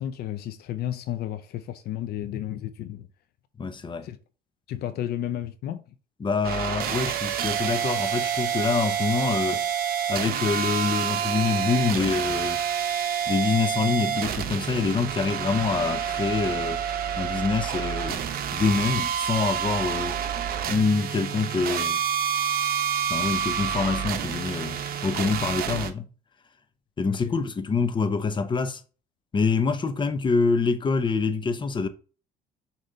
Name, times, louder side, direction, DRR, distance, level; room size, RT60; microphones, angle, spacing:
voice 1, 0.0-3.1 4.0-4.2 4.7-5.8 27.2-27.4, left 11 dB, 70° left, 0.6 m, -32 dB
voice 2, 3.6-4.1 6.2-9.6 10.1-12.6 13.3-16.8 17.2-18.2 18.5-20.2 20.7-22.0 23.1-26.1 27.0-28.8 29.3-31.9, left 4 dB, 30° left, 0.9 m, -26 dB
sound 1, 6.4-25.9, right 8 dB, 60° right, 0.9 m, -28 dB
6.5 x 3.3 x 5.4 m
cardioid pair, 110°, 17 cm